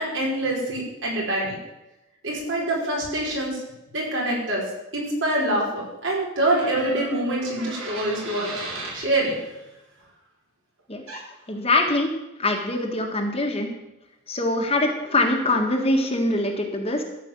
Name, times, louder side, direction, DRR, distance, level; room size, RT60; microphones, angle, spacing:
voice 1, 0.0-1.5 2.2-3.6 3.9-4.6 4.9-8.5 8.9-9.4, right 1 dB, 65° right, -3 dB, 5.4 m, -25 dB
sound 1, 6.4-9.0 11.1-11.3, right 2 dB, 90° right, 4.4 m, -35 dB
voice 2, 11.5-12.1 12.4-13.7 14.3-17.0, left 2 dB, 30° left, 2 dB, 1.7 m, -23 dB
14.0 x 5.5 x 9.0 m, 0.94 s
head